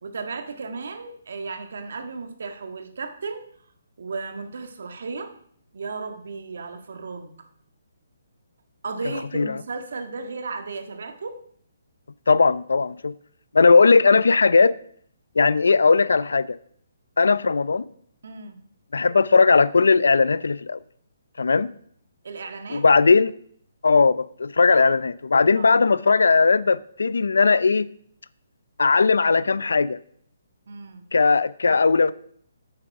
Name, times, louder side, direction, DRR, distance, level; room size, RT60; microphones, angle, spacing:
voice 1, 0.0-3.4 4.0-5.3 5.7-7.3 8.8-11.4 18.2-18.6 22.2-22.8 24.7-25.0 25.6-25.7 30.7-31.1, right 4 dB, 65° right, 1.7 m, -34 dB
voice 2, 12.3-13.1 13.5-14.7 15.4-16.6 17.2-17.9 18.9-20.8 21.4-21.7 22.7-23.3 23.8-27.9 28.8-30.0 31.1-32.1, left 4 dB, 90° left, 0.5 m, -18 dB
8.9 x 8.9 x 4.8 m
hypercardioid pair, 165°, 0 cm